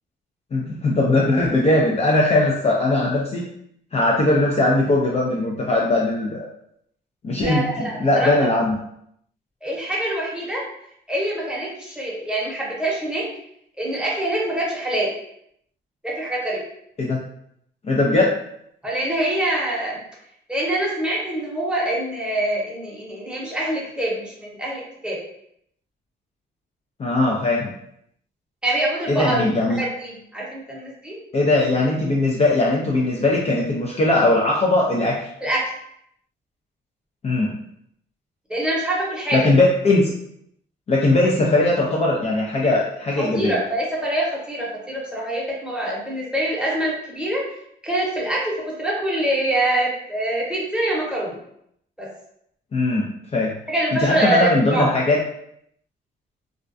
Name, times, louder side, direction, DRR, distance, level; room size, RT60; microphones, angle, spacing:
voice 1, 0.5-3.5 3.9-6.5 7.2-8.8 17.0-17.2 17.8-18.3 27.0-27.7 29.1-29.8 31.3-35.3 37.2-37.6 39.3-40.1 40.9-43.5 52.7-53.1 53.3-53.5 54.0-55.2, left 2 dB, 30° left, -3 dB, 0.4 m, -19 dB
voice 2, 7.4-8.3 9.6-10.6 11.1-13.2 13.8-15.2 16.0-16.6 18.8-20.0 20.5-25.2 28.6-29.4 29.8-31.2 35.4-35.6 38.5-39.4 43.2-47.4 47.8-51.4 52.0-52.1 53.7-54.9, right 1 dB, 5° right, -5 dB, 0.9 m, -25 dB
2.3 x 2.1 x 2.5 m, 0.72 s
cardioid pair, 90°, 20 cm